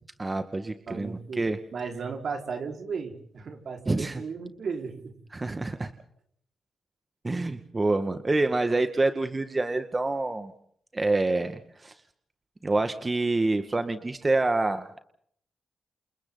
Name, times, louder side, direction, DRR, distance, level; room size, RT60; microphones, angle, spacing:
voice 1, 0.2-1.6 3.9-4.2 5.3-5.9 7.2-10.5 10.9-11.9 12.6-15.0, right 2 dB, 30° right, 8 dB, 2.1 m, -27 dB
voice 2, 0.9-1.4 1.7-5.1, right 5 dB, 65° right, 4 dB, 5.4 m, -35 dB
29.5 x 28.5 x 4.2 m, 0.65 s
cardioid pair, 65°, 0 cm